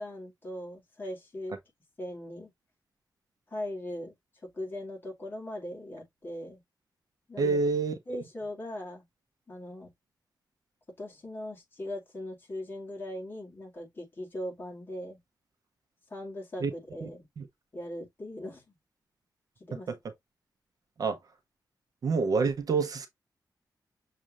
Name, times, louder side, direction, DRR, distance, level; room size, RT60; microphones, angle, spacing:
voice 1, 0.0-1.6 2.0-2.5 3.5-4.1 4.4-6.6 7.3-7.6 8.1-9.1 9.5-9.9 11.0-15.2 16.1-17.3 17.7-18.8 19.7-19.9, left 1 dB, 30° left, 2.0 m, -39 dB
voice 2, 7.4-8.0 16.6-16.7 17.0-17.1 17.4-17.5 19.9-20.0 21.0-21.2 22.0-23.1, right 4 dB, 55° right, 0.7 m, -27 dB
6.4 x 2.5 x 2.9 m
wide cardioid pair, 170°, 8 cm